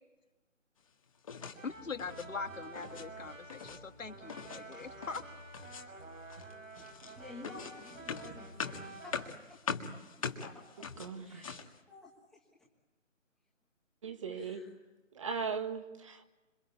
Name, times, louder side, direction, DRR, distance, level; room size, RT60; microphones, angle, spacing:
sound 1, 1.2-1.6 1.9-2.3 2.6-3.1 3.3-3.8 4.3-5.3 5.5-6.0 6.3-11.8, left 6 dB, 25° left, 1.9 m, -42 dB
sound 2, 1.4-9.3, right 2 dB, 80° right, 6.9 m, -49 dB
voice 1, 1.6-5.2, left 5 dB, 75° left, 6 dB, 2.0 m, -42 dB
voice 2, 7.2-9.1 9.5-10.8 11.2-12.4 14.3-14.8, left 3 dB, ahead, -4 dB, 1.4 m, -52 dB
voice 3, 11.0-11.6 14.0-14.7 15.1-16.2, right 5 dB, 25° right, 7 dB, 1.8 m, -38 dB
27.0 x 25.0 x 8.6 m, 1.1 s
hypercardioid pair, 170°, 39 cm